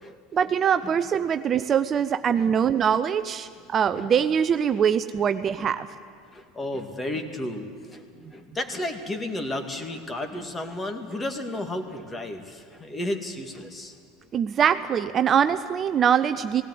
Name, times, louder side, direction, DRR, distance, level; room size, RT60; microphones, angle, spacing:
voice 1, 0.3-5.9 14.3-16.6, right 8 dB, 35° right, 11 dB, 0.6 m, -23 dB
voice 2, 6.3-8.0 8.3-13.9 15.9-16.0, left 1 dB, 20° left, 6 dB, 2.2 m, -33 dB
17.5 x 17.0 x 9.6 m, 2.1 s
hypercardioid pair, 85°, 0 cm